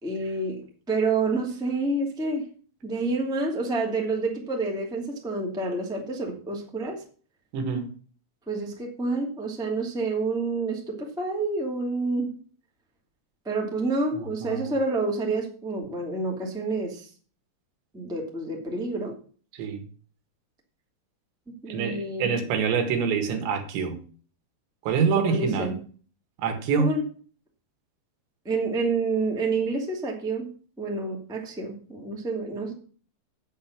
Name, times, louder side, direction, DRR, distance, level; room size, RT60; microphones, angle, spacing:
voice 1, 0.0-2.5 2.8-7.0 8.5-12.3 13.4-17.1 17.9-19.1 21.6-22.3 25.1-25.8 26.8-27.0 28.4-30.5 30.8-32.7, right 3 dB, ahead, 1.3 m, -28 dB
voice 2, 7.5-7.9 14.1-14.7 19.5-19.8 21.7-24.0 24.9-25.7 26.4-26.9, right 6 dB, 80° right, 3.9 m, -26 dB
8.9 x 8.0 x 6.0 m
omnidirectional pair, 5.1 m